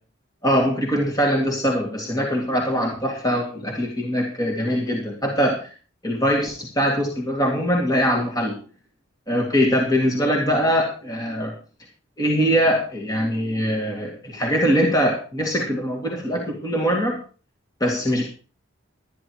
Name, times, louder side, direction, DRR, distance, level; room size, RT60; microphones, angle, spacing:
voice 1, 0.4-5.7 6.0-8.6 9.3-11.6 12.2-17.2 17.8-18.3, equal, 20° left, -1 dB, 2.2 m, -22 dB
13.0 x 10.0 x 4.7 m, 0.37 s
head